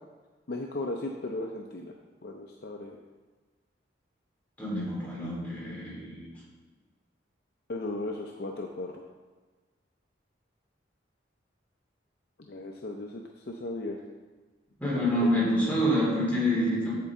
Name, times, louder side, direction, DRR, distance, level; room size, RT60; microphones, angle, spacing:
voice 1, 0.5-1.9 2.2-3.0 7.7-8.9 12.4-14.0 15.1-15.5, left 2 dB, 55° left, 2 dB, 0.6 m, -36 dB
voice 2, 4.6-6.3 14.8-16.9, equal, 10° left, -7 dB, 3.0 m, -27 dB
8.2 x 7.8 x 3.7 m, 1.3 s
head